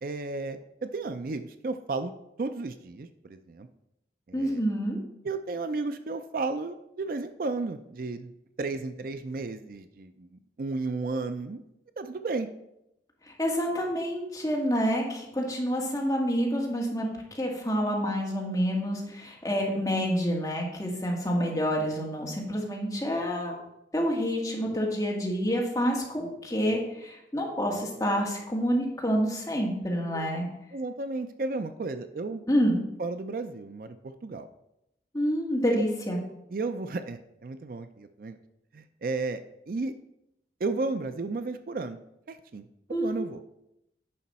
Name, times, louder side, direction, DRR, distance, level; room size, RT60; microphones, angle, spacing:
voice 1, 0.0-3.7 4.3-4.6 5.2-8.3 8.6-11.6 12.0-12.5 30.1-30.3 30.7-32.4 33.0-34.5 35.8-35.9 36.5-38.4 38.7-39.9 40.6-42.0 42.3-43.4, right 3 dB, 50° right, 10 dB, 0.4 m, -33 dB
voice 2, 4.3-5.0 13.4-17.1 17.3-23.5 23.9-30.4 32.5-32.8 35.1-36.2 42.9-43.2, equal, 20° left, -2 dB, 1.7 m, -28 dB
9.9 x 5.5 x 4.2 m, 0.83 s
head